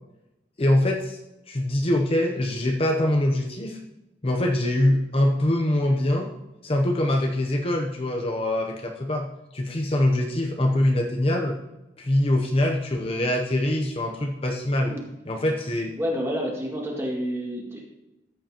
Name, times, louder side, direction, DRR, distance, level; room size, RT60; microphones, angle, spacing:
voice 1, 0.6-1.2 1.5-3.8 4.2-6.3 6.6-9.3 9.5-11.6 12.0-14.9 15.3-15.9, left 1 dB, 30° left, 2 dB, 0.7 m, -23 dB
voice 2, 16.0-17.8, equal, 15° right, -2 dB, 2.0 m, -29 dB
14.0 x 7.9 x 2.9 m, 0.98 s
head